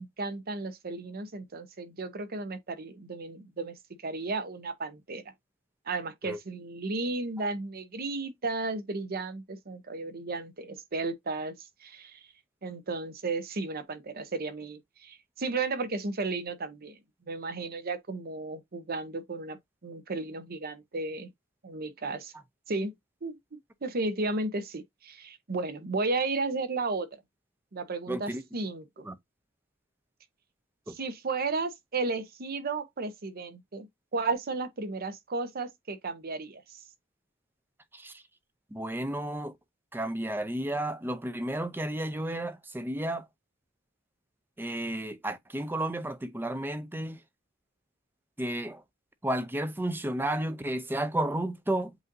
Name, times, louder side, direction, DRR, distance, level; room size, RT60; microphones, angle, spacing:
voice 1, 0.0-5.2 5.9-12.2 12.6-17.0 17.3-21.3 21.6-22.3 22.7-22.9 23.2-23.4 23.8-27.1 27.7-29.0 30.9-33.9 34.1-36.8, right 3 dB, 50° right, 0.8 m, -34 dB
voice 2, 28.1-28.4 29.0-29.1 30.9-31.0 37.9-38.2 38.7-39.5 39.9-43.3 44.6-47.2 48.4-48.8 49.2-51.9, right 1 dB, 10° right, 0.5 m, -32 dB
7.9 x 2.6 x 2.5 m
head